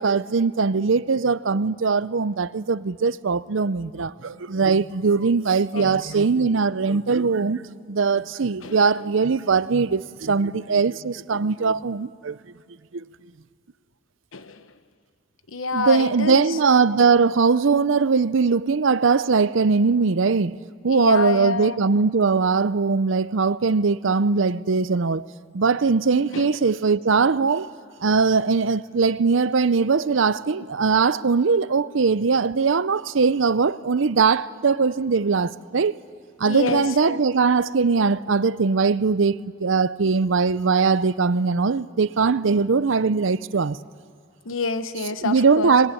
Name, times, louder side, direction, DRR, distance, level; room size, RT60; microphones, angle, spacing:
voice 1, 0.0-12.4 12.9-13.1 15.7-20.6 20.8-27.7 28.0-35.9 36.4-43.8 45.2-45.9, right 5 dB, 75° right, 0.6 m, -21 dB
voice 2, 14.3-14.6 15.5-16.4 20.9-21.8 26.2-26.5 36.4-37.2 44.4-45.7, left 4 dB, 85° left, 1.2 m, -27 dB
25.0 x 21.0 x 9.8 m
head